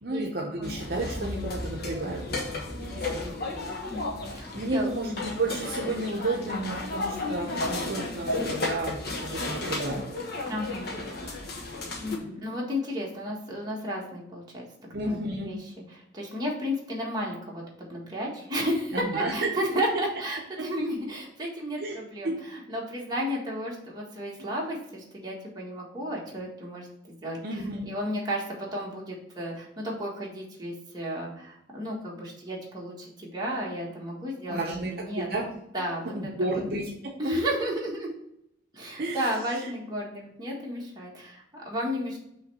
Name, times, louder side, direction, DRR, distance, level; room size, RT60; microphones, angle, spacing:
voice 1, 0.0-3.4 4.5-10.1 12.1-12.3 14.9-15.5 18.9-19.5 20.6-20.7 21.8-22.0 22.2-22.4 27.4-27.9 34.5-35.5 36.1-37.1 39.0-39.3, right 2 dB, 55° right, 0 dB, 0.8 m, -32 dB
sound 1, 0.6-12.2, left 2 dB, 55° left, 1.2 m, -33 dB
voice 2, 4.3-4.9 10.5-11.0 12.0-14.6 15.1-15.2 15.4-15.6 16.1-26.9 27.2-34.6 34.9-35.3 35.7-36.1 37.2-38.1 38.7-42.2, equal, 20° right, -3 dB, 1.6 m, -33 dB
5.5 x 3.2 x 5.4 m, 0.77 s
head